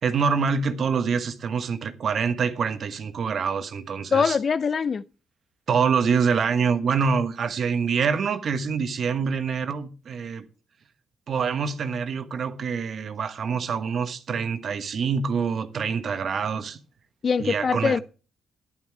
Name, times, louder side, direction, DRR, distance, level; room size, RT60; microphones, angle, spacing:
voice 1, 0.0-4.4 5.7-10.4 11.3-16.8 17.4-18.0, right 6 dB, 55° right, 1.3 m, -25 dB
voice 2, 4.1-5.0 17.2-18.0, left 6 dB, 45° left, 0.5 m, -23 dB
11.0 x 9.7 x 4.7 m
cardioid pair, 90°, 0 cm